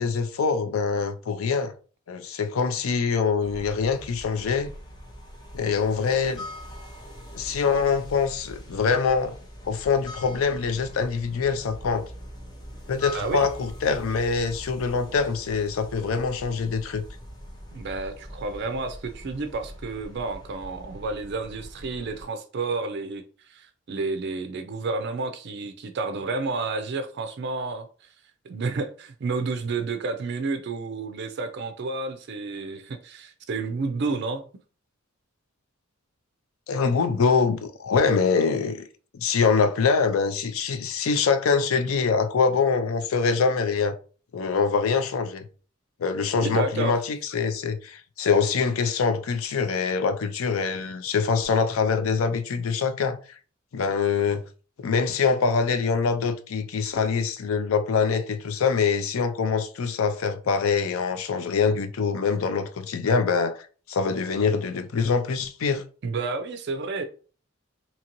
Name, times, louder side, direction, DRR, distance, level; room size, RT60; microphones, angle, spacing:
voice 1, 0.0-1.7 2.1-4.7 5.5-6.5 7.3-9.3 9.6-12.0 12.9-17.0 36.7-38.9 39.1-43.9 44.3-45.5 46.0-53.2 53.7-54.4 54.8-63.6 63.9-65.8, left 5 dB, 80° left, 0.4 m, -24 dB
sound 1, 3.4-22.2, equal, 20° left, 0.6 m, -42 dB
voice 2, 13.1-13.5 17.7-27.9 28.4-34.4 46.4-46.9 66.0-67.0, right 3 dB, 55° right, 0.4 m, -30 dB
2.8 x 2.6 x 2.9 m
head